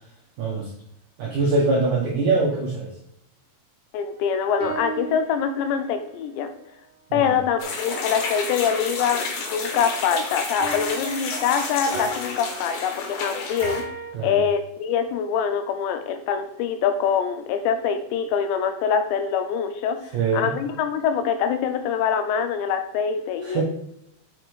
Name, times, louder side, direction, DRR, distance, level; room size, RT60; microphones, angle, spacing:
voice 1, 0.4-0.7 1.2-2.9 7.1-7.4 14.1-14.4 20.1-20.5 23.4-23.6, right 3 dB, 75° right, -2 dB, 1.8 m, -23 dB
voice 2, 3.9-6.5 7.1-13.8 14.2-20.0 20.3-23.6, left 7 dB, 85° left, 8 dB, 2.8 m, -24 dB
sound 1, 4.2-6.0 10.6-14.1, right 3 dB, 60° right, 2.7 m, -36 dB
sound 2, 7.6-13.8, left 3 dB, 65° left, 2.5 m, -30 dB
6.2 x 5.9 x 4.8 m, 0.79 s
omnidirectional pair, 5.3 m